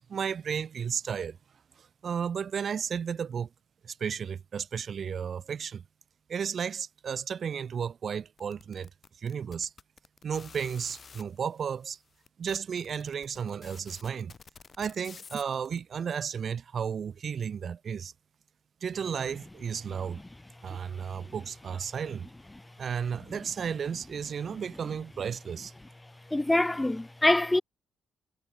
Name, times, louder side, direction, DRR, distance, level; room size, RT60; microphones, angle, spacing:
voice 1, 0.1-1.4 1.8-3.5 3.8-5.8 6.3-8.9 9.2-9.7 10.2-12.0 12.4-14.3 14.8-18.1 18.8-20.2 20.6-22.3 22.8-25.7, right 7 dB, 50° right, 1.4 m, -33 dB
sound 1, 8.4-11.2 11.9-12.0 12.2-15.8, left 5 dB, 40° left, 3.5 m, -50 dB
voice 2, 26.3-27.6, left 1 dB, 10° left, 0.6 m, -24 dB
cardioid pair, 90°, 0 cm